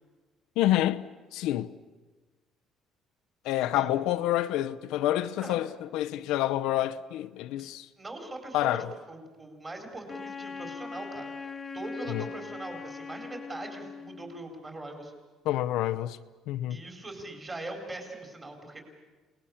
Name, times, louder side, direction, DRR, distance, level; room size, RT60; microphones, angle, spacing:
voice 1, 0.6-1.7 3.4-7.9 8.5-8.9 12.1-12.2 15.4-16.2 16.5-16.8, left 13 dB, 75° left, 0.7 m, -28 dB
voice 2, 8.0-15.1 16.7-18.8, right 2 dB, 20° right, 4.4 m, -41 dB
Wind instrument woodwind instrument, 10.1-14.5, left 4 dB, 20° left, 0.8 m, -40 dB
29.5 x 19.5 x 7.1 m
cardioid pair, 160°, 0 cm